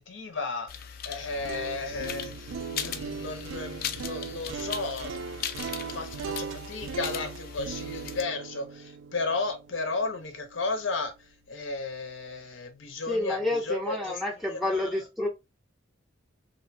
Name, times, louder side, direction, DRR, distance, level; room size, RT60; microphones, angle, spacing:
voice 1, 0.0-5.2 5.9-11.1 11.5-14.2 14.5-14.9, left 3 dB, 80° left, 0.7 m, -34 dB
sound 1, 0.7-8.2, left 8 dB, 50° left, 0.3 m, -39 dB
sound 2, 1.2-11.3, right 5 dB, 75° right, 0.3 m, -39 dB
voice 2, 13.1-15.3, left 1 dB, ahead, 0.5 m, -29 dB
2.6 x 2.1 x 2.5 m
head